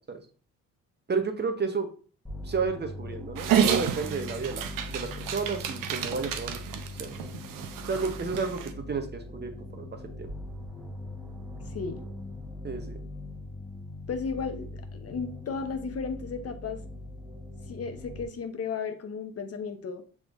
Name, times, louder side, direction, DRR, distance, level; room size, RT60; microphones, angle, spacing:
voice 1, 1.1-1.9 2.4-7.2 7.8-10.3 12.6-13.0, right 4 dB, 30° right, 7 dB, 0.9 m, -32 dB
sound 1, 2.2-18.3, left 2 dB, ahead, 1.2 m, -41 dB
Dog, 3.4-8.7, right 8 dB, 60° right, 0.7 m, -30 dB
voice 2, 14.1-16.8 17.7-20.0, left 5 dB, 40° left, 7 dB, 0.8 m, -34 dB
5.9 x 3.6 x 2.5 m, 0.39 s
hypercardioid pair, 55°, 37 cm